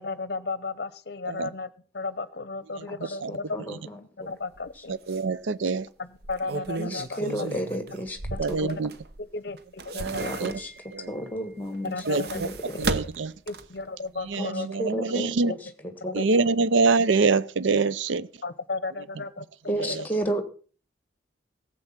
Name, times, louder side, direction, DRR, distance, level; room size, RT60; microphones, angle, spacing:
voice 1, 0.0-3.7 4.0-5.0 6.0-7.6 8.3-8.4 8.7-8.8 9.2-10.4 11.8-12.4 12.7-12.8 13.5-14.7 16.1-16.3 18.4-19.9, left 3 dB, 55° left, 0.7 m, -34 dB
voice 2, 3.0-4.3 4.8-4.9 6.8-8.2 8.5-8.7 10.1-12.0 12.3-12.8 14.4-16.2 19.7-20.4, right 1 dB, 10° left, 1.5 m, -33 dB
sound 1, 4.6-4.7 5.1-5.2 6.1-9.2 9.6-10.9 11.7-13.9 14.2-14.3, right 3 dB, 55° right, 0.9 m, -34 dB
voice 3, 4.9-5.9 8.4-8.9 9.9-10.5 10.9-11.1 12.1-12.5 12.8-13.3 14.2-15.5 16.1-18.3 19.8-19.9, right 4 dB, 80° right, 0.5 m, -25 dB
15.5 x 7.7 x 5.8 m
head